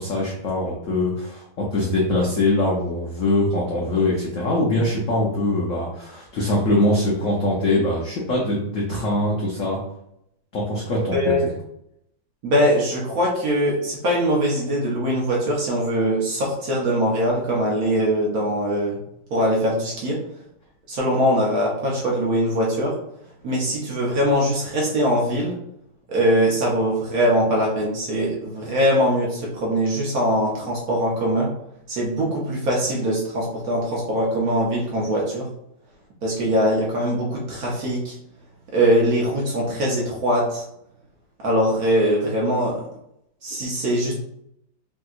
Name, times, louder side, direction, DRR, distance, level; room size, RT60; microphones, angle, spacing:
voice 1, 0.0-9.8 10.5-11.2, left 1 dB, 85° left, -3 dB, 0.7 m, -22 dB
voice 2, 12.4-19.0 19.3-20.2 20.9-22.9 23.4-25.6 26.1-31.5 31.9-35.5 36.2-38.1 38.7-40.6 41.4-42.8 43.4-44.1, equal, 60° right, -3 dB, 1.0 m, -22 dB
3.4 x 2.8 x 2.4 m, 0.77 s
omnidirectional pair, 2.1 m